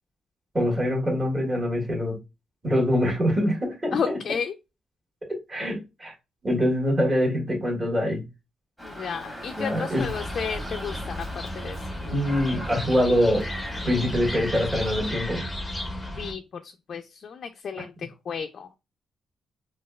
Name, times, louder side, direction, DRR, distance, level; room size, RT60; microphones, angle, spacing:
voice 1, 0.5-2.2 2.6-4.2 5.5-6.1 6.4-8.2 9.5-10.0 12.0-13.5 13.8-15.4, equal, 25° right, 1.5 m, -24 dB
voice 2, 3.9-4.5 8.8-11.3 11.5-11.8 16.2-18.8, left 6 dB, 55° left, 0.3 m, -32 dB
Dog, 8.8-15.1, equal, 5° right, 1.4 m, -40 dB
sound 1, 9.9-16.3, left 1 dB, 10° left, 0.7 m, -34 dB
4.2 x 2.3 x 2.2 m
cardioid pair, 120°, 0 cm